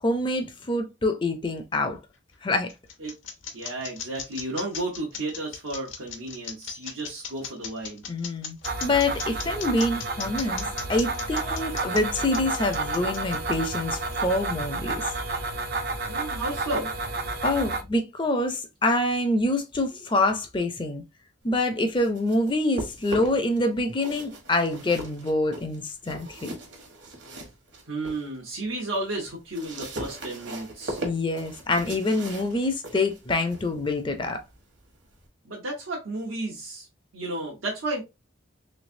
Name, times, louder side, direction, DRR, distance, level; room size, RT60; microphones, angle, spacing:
voice 1, 0.0-2.0 2.4-2.7 8.1-15.0 17.4-21.0 21.4-26.6 31.0-34.4, left 2 dB, 25° left, 0.4 m, -26 dB
sound 1, 2.1-14.1, left 7 dB, 75° left, 0.8 m, -37 dB
voice 2, 3.5-8.0 16.1-16.9 27.8-31.0 35.4-36.9 37.1-38.0, right 2 dB, 90° right, 1.0 m, -33 dB
sound 2, 8.6-17.8, right 3 dB, 50° right, 0.5 m, -30 dB
sound 3, 21.7-23.6 23.9-28.3 28.7-35.3, right 1 dB, 65° right, 1.2 m, -40 dB
3.3 x 3.2 x 2.6 m
head